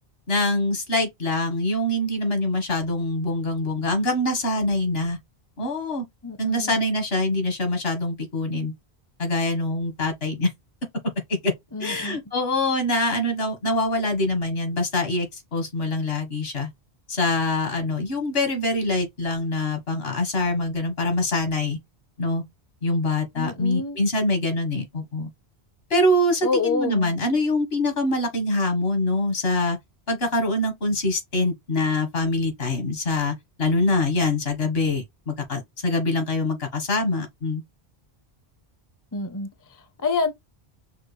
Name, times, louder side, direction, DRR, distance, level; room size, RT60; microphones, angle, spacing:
voice 1, 0.3-5.2 5.6-6.0 6.4-8.7 9.2-10.5 11.3-11.5 11.8-16.7 17.1-21.8 22.2-22.4 22.8-25.3 25.9-29.8 30.1-37.6, left 2 dB, 70° left, 1.6 m, -24 dB
voice 2, 6.2-6.8 11.7-12.2 23.4-24.0 26.4-27.1 39.1-39.5 40.0-40.3, left 4 dB, 20° left, 0.6 m, -27 dB
5.8 x 2.2 x 3.1 m
omnidirectional pair, 1.1 m